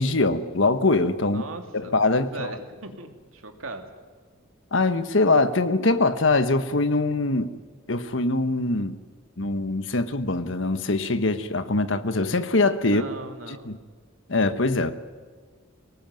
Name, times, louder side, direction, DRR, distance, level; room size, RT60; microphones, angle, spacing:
voice 1, 0.0-1.4 1.7-2.5 4.7-7.5 7.9-9.0 9.4-13.0 13.6-13.8 14.3-14.9, left 2 dB, 65° left, 11 dB, 1.3 m, -23 dB
voice 2, 1.3-3.8 12.9-13.7, right 3 dB, 85° right, 5 dB, 2.7 m, -39 dB
24.0 x 19.0 x 9.2 m, 1.5 s
head